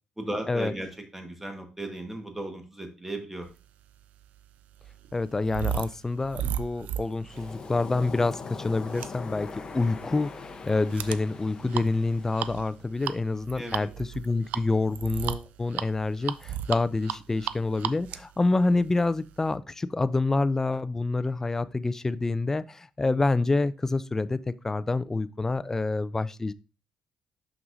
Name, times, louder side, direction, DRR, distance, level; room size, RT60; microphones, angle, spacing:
voice 1, 0.2-0.9 1.1-3.5 13.5-13.9, right 1 dB, 10° right, 1.4 m, -36 dB
sound 1, 3.9-19.5, right 10 dB, 85° right, 0.3 m, -37 dB
voice 2, 5.1-24.4 24.6-26.5, left 3 dB, 20° left, 0.3 m, -27 dB
Waves surf, 7.3-12.8, left 4 dB, 35° left, 0.7 m, -41 dB
6.2 x 5.9 x 2.6 m
cardioid pair, 110°, 2 cm